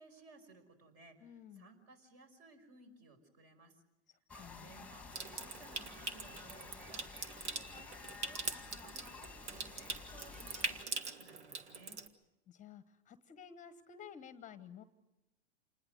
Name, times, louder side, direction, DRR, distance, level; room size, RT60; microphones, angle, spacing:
voice 1, 0.0-3.8 4.6-12.0, right 3 dB, 45° right, 8 dB, 5.5 m, -60 dB
voice 2, 1.2-1.7 4.3-4.7 12.5-14.8, left 8 dB, 20° left, 13 dB, 1.0 m, -53 dB
sound 1, 4.3-10.8, left 4 dB, 5° left, 1.6 m, -52 dB
Water tap faucet / Sink (filling or washing) / Trickle dribble, 5.1-12.1, right 4 dB, 80° right, 1.9 m, -43 dB
28.0 x 20.5 x 6.5 m, 0.96 s
hypercardioid pair, 105°, 33 cm